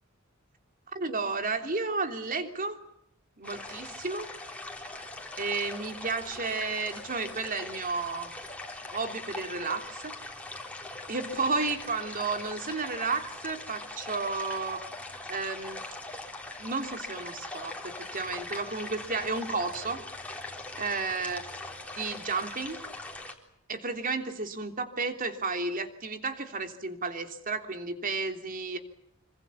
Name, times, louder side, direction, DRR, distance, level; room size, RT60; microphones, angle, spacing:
voice 1, 0.9-2.8 3.4-4.3 5.4-8.3 8.9-10.1 11.1-14.8 15.3-15.8 16.6-20.0 20.8-21.4 22.0-22.8 23.7-28.8, right 4 dB, 40° right, 6 dB, 3.2 m, -32 dB
sound 1, 3.4-23.3, left 2 dB, 5° left, 3.8 m, -41 dB
26.5 x 25.5 x 7.2 m, 0.75 s
head